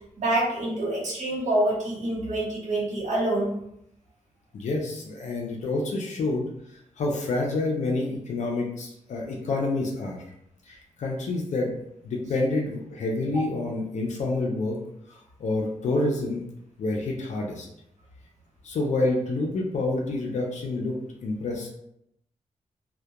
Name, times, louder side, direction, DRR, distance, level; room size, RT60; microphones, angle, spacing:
voice 1, 0.2-3.6, right 1 dB, 75° right, -5 dB, 0.9 m, -26 dB
voice 2, 4.5-6.5 7.0-10.2 10.7-11.8 12.0-14.8 15.1-16.4 16.8-17.7 18.6-21.7, left 2 dB, 70° left, 0 dB, 0.4 m, -28 dB
2.2 x 2.1 x 2.8 m, 0.77 s
cardioid pair, 75°, 12 cm